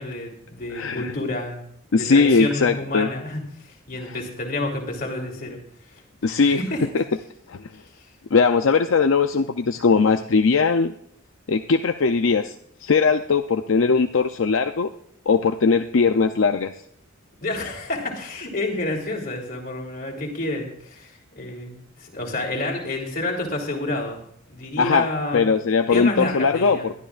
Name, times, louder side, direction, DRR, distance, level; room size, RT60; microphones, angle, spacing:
voice 1, 0.0-1.6 1.9-5.6 6.3-6.9 17.4-24.2 24.5-25.4 25.9-26.9, left 2 dB, 45° left, 1 dB, 3.1 m, -29 dB
voice 2, 0.7-1.1 1.9-3.1 6.2-6.6 6.9-7.0 7.5-7.6 8.3-10.9 11.5-12.5 12.8-14.9 15.3-16.7 24.8-25.1 25.3-26.9, left 4 dB, 70° left, 7 dB, 0.5 m, -19 dB
21.0 x 12.5 x 2.5 m, 0.67 s
head